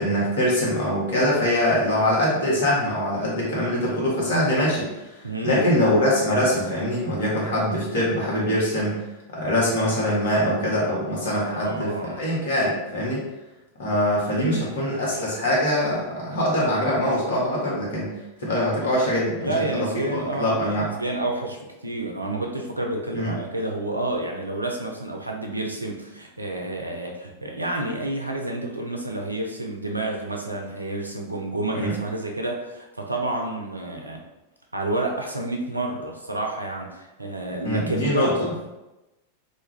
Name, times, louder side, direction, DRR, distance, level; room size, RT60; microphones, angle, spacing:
voice 1, 0.0-9.0 9.3-13.2 13.8-18.1 18.4-20.9 23.1-23.3 31.7-31.9 37.6-38.3, left 1 dB, 60° left, -5 dB, 1.0 m, -23 dB
voice 2, 5.2-5.7 11.2-12.2 14.3-14.8 19.4-34.2 34.7-38.7, right 2 dB, 85° right, 1 dB, 0.4 m, -29 dB
2.4 x 2.3 x 3.1 m, 1.0 s
figure-of-eight pair, 90°, 0 cm